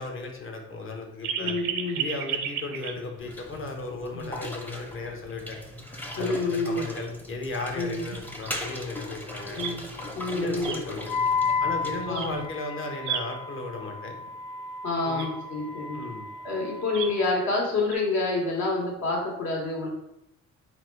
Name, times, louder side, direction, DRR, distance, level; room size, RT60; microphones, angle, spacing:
voice 1, 0.0-1.5 1.9-5.6 6.1-6.3 6.6-9.6 10.3-11.2 11.6-14.1 15.0-15.3 15.9-16.3, left 2 dB, 45° left, 2 dB, 0.9 m, -35 dB
sound 1, 1.2-3.5 3.8-3.9 4.4-4.5 5.8-5.9 6.4-6.5 6.8-6.9 7.2-10.1 10.5-11.8 12.0-12.5 12.9-13.7 14.3-14.4 14.6-14.7 14.9-17.9, right 8 dB, 85° right, 0.5 m, -35 dB
voice 2, 1.4-2.0 4.1-4.3 6.2-6.9 7.7-8.0 9.5-9.8 10.1-10.8 12.1-12.4 14.8-16.0 16.4-19.9, left 3 dB, 65° left, -2 dB, 1.4 m, -28 dB
sound 2, 3.2-12.4, left 1 dB, 5° left, 0.6 m, -38 dB
Wind instrument woodwind instrument, 11.0-17.2, left 4 dB, 90° left, 0.6 m, -32 dB
3.9 x 2.2 x 4.5 m, 0.83 s
cardioid pair, 90°, 30 cm